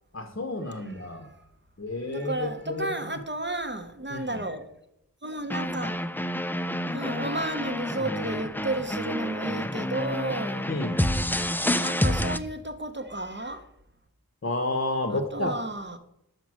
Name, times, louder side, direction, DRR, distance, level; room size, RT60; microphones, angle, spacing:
voice 1, 0.1-1.3 1.8-3.0 4.1-4.4 10.7-11.0 14.4-15.5, left 2 dB, 40° left, 0.8 m, -30 dB
voice 2, 0.9-1.5 2.1-4.7 5.2-6.0 6.4-10.8 11.8-13.7 15.1-16.0, right 2 dB, 30° right, 0.7 m, -33 dB
sound 1, 5.5-12.4, left 1 dB, 5° left, 0.3 m, -28 dB
5.9 x 5.2 x 6.1 m
wide cardioid pair, 45°, 36 cm